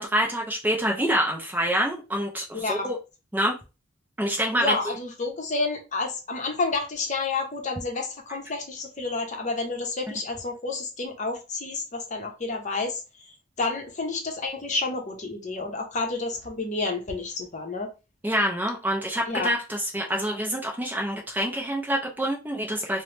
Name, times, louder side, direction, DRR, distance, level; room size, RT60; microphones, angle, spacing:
voice 1, 0.0-3.0 3.3-3.6 4.2-4.7 18.2-23.0, equal, 10° right, 0.4 m, -26 dB
voice 2, 2.5-2.9 4.6-13.0 13.6-17.9 19.3-19.5, left 3 dB, 40° left, 0.7 m, -30 dB
2.8 x 2.0 x 3.2 m
head